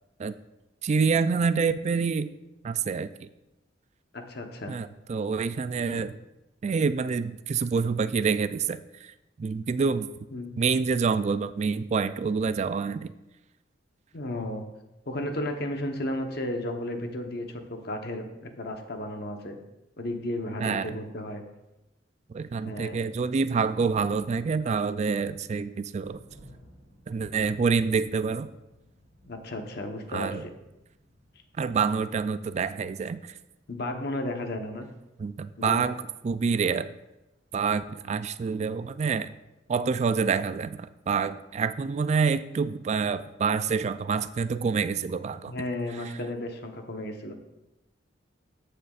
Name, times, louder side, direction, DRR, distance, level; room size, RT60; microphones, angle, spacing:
voice 1, 0.8-2.3 2.6-3.3 4.7-6.1 6.6-9.1 9.4-10.1 10.6-13.1 20.6-21.0 22.3-26.2 27.1-28.5 30.1-30.4 31.6-33.2 35.2-36.0 36.2-36.9 37.5-39.3 39.7-45.5, right 5 dB, 35° right, 12 dB, 0.3 m, -27 dB
voice 2, 4.1-4.8 5.9-6.1 10.3-10.5 14.1-14.6 15.1-19.6 20.0-21.4 22.6-23.1 29.3-30.5 33.7-34.9 35.6-35.9 45.5-47.3, left 1 dB, 60° left, 4 dB, 1.0 m, -34 dB
Thunder, 22.6-40.5, equal, 55° right, 2.2 m, -57 dB
13.5 x 6.7 x 2.4 m, 0.96 s
head